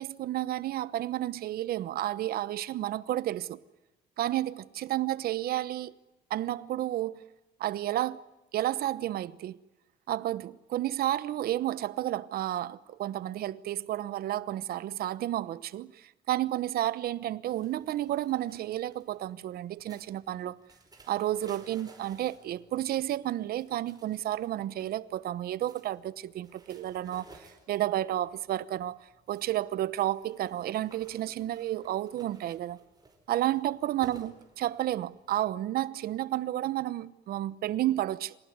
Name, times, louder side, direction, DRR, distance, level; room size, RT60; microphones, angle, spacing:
voice 1, 0.0-3.6 4.2-5.9 6.3-7.2 7.6-8.2 8.5-9.6 10.1-20.6 21.1-32.8 33.3-38.4, right 13 dB, 65° right, 1.0 m, -31 dB
sound 1, 17.5-35.4, right 3 dB, 25° right, 5.0 m, -58 dB
26.0 x 19.0 x 9.5 m
cardioid pair, 110°, 17 cm